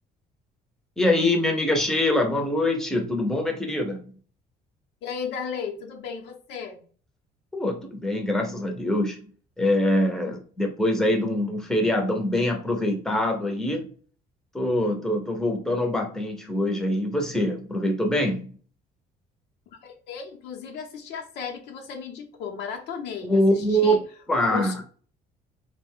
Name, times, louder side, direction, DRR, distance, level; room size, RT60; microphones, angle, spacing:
voice 1, 1.0-4.0 7.5-9.2 9.6-13.9 14.5-18.5 23.2-24.7, left 1 dB, 5° left, 3 dB, 0.6 m, -24 dB
voice 2, 5.0-6.8 19.7-24.0 24.5-24.8, left 6 dB, 80° left, 2 dB, 0.7 m, -35 dB
2.3 x 2.1 x 3.5 m, 0.42 s
cardioid pair, 110°, 17 cm